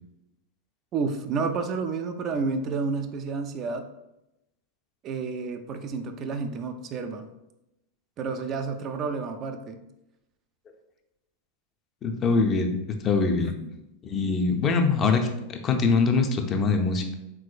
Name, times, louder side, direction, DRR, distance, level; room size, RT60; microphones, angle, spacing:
voice 1, 0.9-3.9 5.0-7.3 8.2-9.8, right 4 dB, 30° right, 7 dB, 0.3 m, -30 dB
voice 2, 12.0-12.7 13.0-13.5 14.0-17.1, left 4 dB, 30° left, 5 dB, 0.5 m, -23 dB
4.6 x 3.7 x 2.4 m, 0.90 s
figure-of-eight pair, 90°, 0 cm